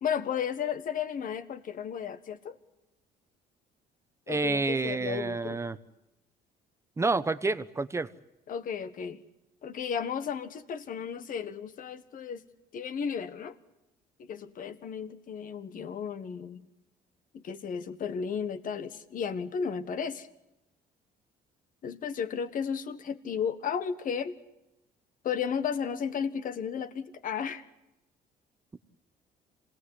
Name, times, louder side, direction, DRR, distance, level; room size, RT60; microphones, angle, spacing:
voice 1, 0.0-2.6 4.3-5.6 8.5-9.2 9.6-12.4 12.7-13.5 14.2-16.7 17.3-20.3 21.8-24.4 25.2-27.7, left 7 dB, 55° left, 12 dB, 1.5 m, -34 dB
voice 2, 4.3-5.8 7.0-8.1, right 3 dB, 15° right, 13 dB, 1.0 m, -29 dB
26.5 x 18.0 x 9.7 m, 0.92 s
cardioid pair, 110°, 17 cm